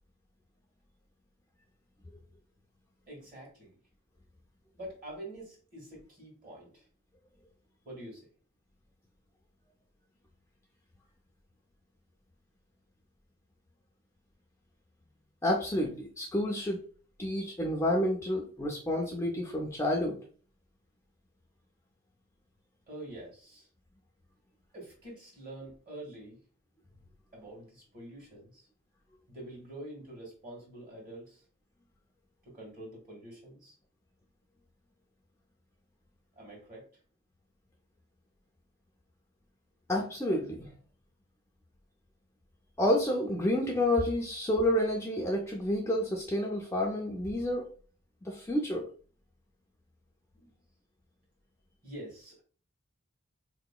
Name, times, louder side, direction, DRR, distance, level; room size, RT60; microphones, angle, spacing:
voice 1, 3.1-3.8 4.8-6.9 7.8-8.2 22.9-23.7 24.7-26.4 27.3-28.7 29.3-31.4 32.4-33.7 36.3-36.9 50.3-50.5 51.8-52.4, right 1 dB, 40° right, -3 dB, 1.5 m, -46 dB
voice 2, 15.4-16.8 17.2-20.2 39.9-40.7 42.8-47.7 48.2-48.8, left 1 dB, 10° left, -1 dB, 0.4 m, -29 dB
3.6 x 2.8 x 2.2 m, 0.41 s
head